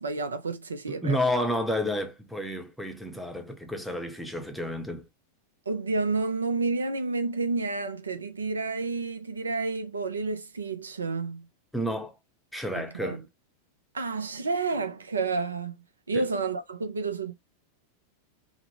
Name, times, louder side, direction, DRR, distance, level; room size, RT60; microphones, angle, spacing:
voice 1, 0.0-1.4 5.7-11.5 12.7-13.2 13.9-15.8 16.1-17.3, right 3 dB, 75° right, 0.4 m, -30 dB
voice 2, 0.9-5.1 11.7-12.1 12.5-13.2 16.1-16.3, equal, ahead, 0.7 m, -30 dB
3.6 x 2.0 x 2.9 m
figure-of-eight pair, 90°, 0 cm